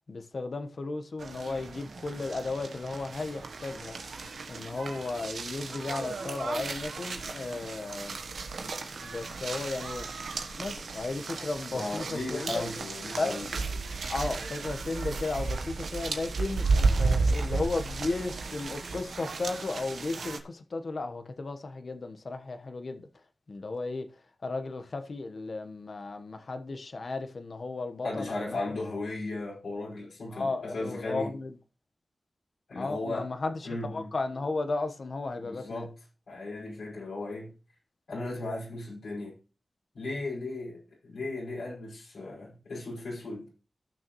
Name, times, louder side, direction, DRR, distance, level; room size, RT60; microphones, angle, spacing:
voice 1, 0.1-4.0 4.5-8.2 9.0-10.1 10.6-12.6 13.2-13.4 14.1-23.1 23.5-24.0 24.4-28.6 30.3-31.6 32.7-33.5 33.9-35.9, left 3 dB, 65° left, 1.2 m, -34 dB
sound 1, 1.2-20.4, right 3 dB, 85° right, 1.2 m, -33 dB
voice 2, 11.7-13.4 28.0-31.3 32.7-33.3 33.6-34.1 35.4-35.9 36.3-37.5 38.1-39.3 39.9-43.5, left 2 dB, 90° left, 5.5 m, -36 dB
14.5 x 6.4 x 3.1 m
cardioid pair, 45°, 0 cm